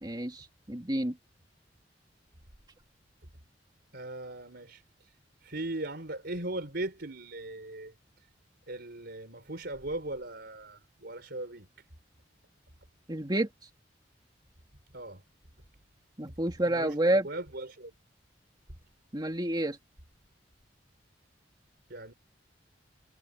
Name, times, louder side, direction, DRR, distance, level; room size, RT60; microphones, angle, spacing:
voice 1, 0.0-1.2 13.1-13.5 16.2-17.3 19.1-19.8, right 1 dB, 25° right, 2.7 m, -29 dB
voice 2, 3.9-5.1 5.4-7.9 8.7-11.7 14.9-15.2 16.6-17.9 21.9-22.1, right 2 dB, 65° right, 4.5 m, -39 dB
head